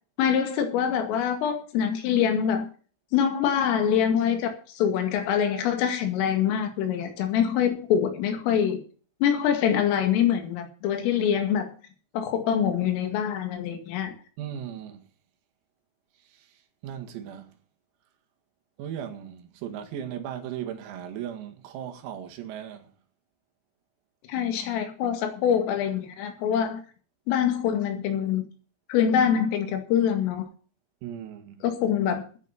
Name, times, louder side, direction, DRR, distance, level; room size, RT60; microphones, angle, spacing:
voice 1, 0.2-2.7 3.1-8.8 9.2-11.7 12.1-14.1 24.3-26.8 27.3-28.4 28.9-30.5 31.6-32.2, left 8 dB, 75° left, 4.6 m, -24 dB
voice 2, 14.4-15.0 16.3-17.5 18.8-22.9 31.0-31.6, right 9 dB, 85° right, 4.7 m, -37 dB
14.5 x 9.9 x 5.8 m
omnidirectional pair, 6.0 m